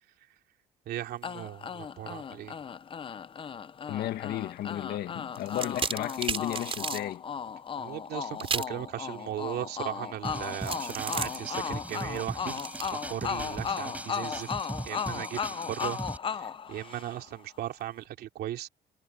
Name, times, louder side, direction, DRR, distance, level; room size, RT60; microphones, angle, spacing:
voice 1, 0.9-2.5 7.8-12.6 12.9-14.5 14.9-16.0 16.4-18.7, right 13 dB, 70° right, 2.9 m, -37 dB
sound 1, 1.2-17.4, left 7 dB, 30° left, 0.7 m, -36 dB
voice 2, 3.9-7.2 8.3-8.4, left 13 dB, 70° left, 1.6 m, -34 dB
sound 2, 5.3-7.0 8.4-8.8 10.6-13.7, right 5 dB, 35° right, 4.4 m, -35 dB
sound 3, 10.2-16.2, right 1 dB, 10° right, 5.3 m, -39 dB
cardioid pair, 110°, 17 cm